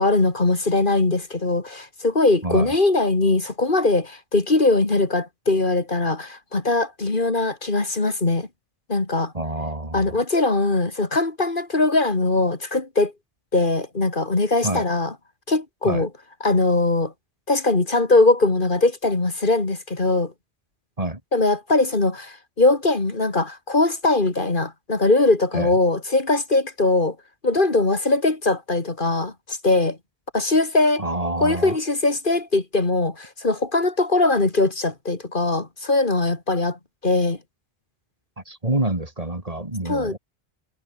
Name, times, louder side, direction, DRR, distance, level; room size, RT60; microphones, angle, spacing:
voice 1, 0.0-8.5 8.9-9.3 9.9-13.1 13.5-15.1 15.5-16.1 16.4-17.1 17.5-20.3 21.3-27.2 27.4-30.0 30.3-31.0 31.4-37.4 39.8-40.2, left 2 dB, 55° left, 2.6 m, -21 dB
voice 2, 9.3-10.1 14.6-14.8 15.8-16.0 21.0-21.2 25.5-25.7 31.0-31.8 38.5-40.2, right 1 dB, 35° right, 3.3 m, -27 dB
omnidirectional pair, 1.0 m